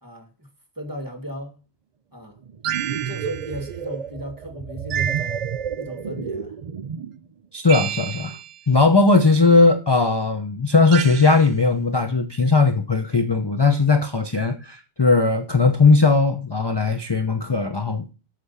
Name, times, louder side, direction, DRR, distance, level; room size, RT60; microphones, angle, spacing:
voice 1, 0.0-0.5 0.8-1.6 2.1-2.4 3.1-6.6, equal, 20° right, 1.9 m, -35 dB
underwater wailing, 2.4-7.2, right 8 dB, 50° right, 0.5 m, -31 dB
Cute Magic Sounds, 2.6-3.6 4.9-5.8 7.7-8.6 10.9-11.5, right 10 dB, 75° right, 0.9 m, -30 dB
voice 2, 7.5-8.4 8.7-18.1, left 3 dB, 25° left, 0.8 m, -18 dB
8.4 x 6.8 x 5.6 m
omnidirectional pair, 1.1 m